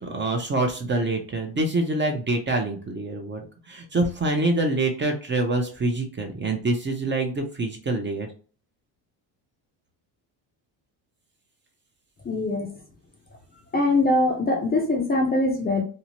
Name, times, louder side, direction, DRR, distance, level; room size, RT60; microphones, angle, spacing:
voice 1, 0.0-3.4 3.7-8.3, right 2 dB, 25° right, 3 dB, 0.6 m, -25 dB
voice 2, 12.2-12.7 13.7-15.8, left 2 dB, 20° left, 2 dB, 0.5 m, -22 dB
2.7 x 2.1 x 2.9 m, 0.39 s
cardioid pair, 100°, 45 cm